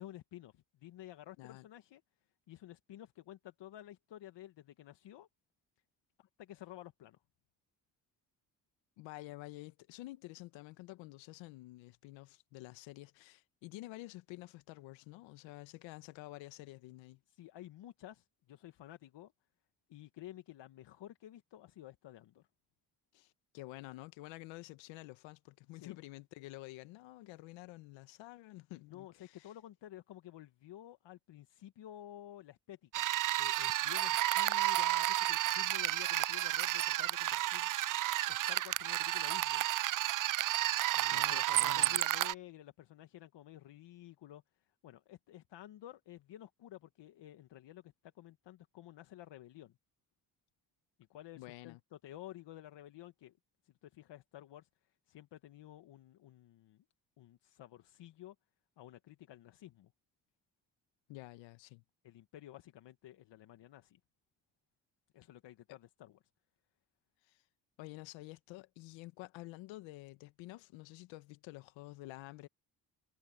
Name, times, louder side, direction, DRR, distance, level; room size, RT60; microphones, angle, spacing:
voice 1, 0.0-2.0 2.5-5.3 6.2-7.2 17.3-19.3 19.9-22.5 25.7-26.0 28.9-33.1 33.4-37.7 38.3-39.6 41.0-49.7 51.1-53.4 53.6-56.8 57.2-58.3 58.8-59.9 62.0-64.0 65.1-66.2, left 13 dB, 70° left, 1.5 m, -52 dB
voice 2, 9.0-17.2 23.1-29.5 41.1-42.0 51.4-51.8 61.1-61.8 67.3-67.4 67.8-72.5, left 19 dB, 85° left, 1.4 m, -50 dB
sound 1, 32.9-42.3, right 15 dB, 50° right, 0.5 m, -32 dB
supercardioid pair, 50°, 44 cm